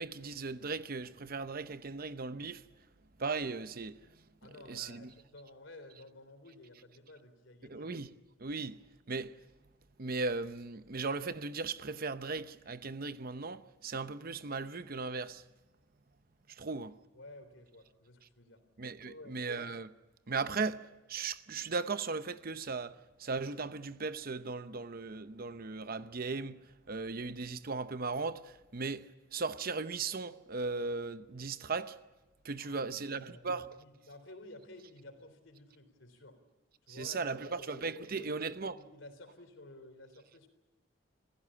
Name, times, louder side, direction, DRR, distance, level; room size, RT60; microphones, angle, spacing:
voice 1, 0.0-2.6 3.2-4.0 4.7-5.1 7.6-8.1 8.4-8.8 9.1-9.3 10.0-15.4 16.5-16.9 18.8-19.9 20.3-32.0 32.4-33.7 36.9-38.8, right 4 dB, 50° right, 0.8 m, -37 dB
voice 2, 4.4-7.9 17.1-18.6 19.0-19.4 32.6-36.4 36.9-38.4 38.8-40.5, left 1 dB, 75° left, 3.7 m, -53 dB
26.5 x 16.0 x 8.7 m
head